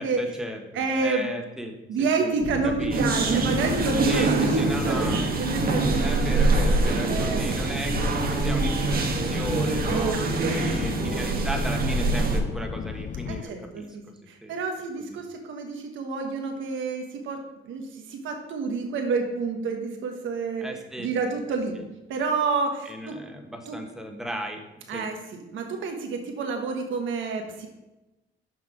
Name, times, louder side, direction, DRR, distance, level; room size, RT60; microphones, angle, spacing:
voice 1, 0.0-2.3 2.6-3.4 4.0-5.3 6.0-14.5 15.0-15.2 20.6-21.1 21.8-21.9 22.8-24.6 24.9-25.1, equal, 5° right, 3 dB, 1.3 m, -36 dB
voice 2, 0.7-1.3 1.9-5.0 5.4-6.4 7.1-7.5 9.9-11.3 13.3-17.4 17.6-20.6 21.0-21.7 22.1-23.1 23.7-23.8 24.9-25.2 25.5-27.7, right 4 dB, 80° right, 3 dB, 1.3 m, -29 dB
sound 1, 2.4-13.4, left 8 dB, 40° left, 0.4 m, -35 dB
sound 2, 2.9-12.4, right 3 dB, 50° right, 1.2 m, -25 dB
6.5 x 5.8 x 5.0 m, 1.0 s
cardioid pair, 90°, 20 cm